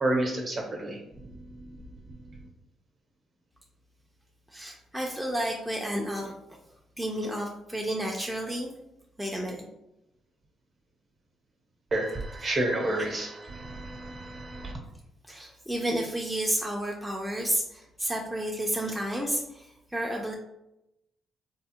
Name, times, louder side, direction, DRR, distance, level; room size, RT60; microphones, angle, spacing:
voice 1, 0.0-1.0 11.9-14.7, right 1 dB, 40° right, 1 dB, 0.8 m, -30 dB
voice 2, 4.5-6.3 7.0-8.7 9.2-9.6 12.4-12.5 15.3-20.3, right 1 dB, 5° right, -1 dB, 0.4 m, -31 dB
3.4 x 2.0 x 2.8 m, 0.87 s
cardioid pair, 90°, 0 cm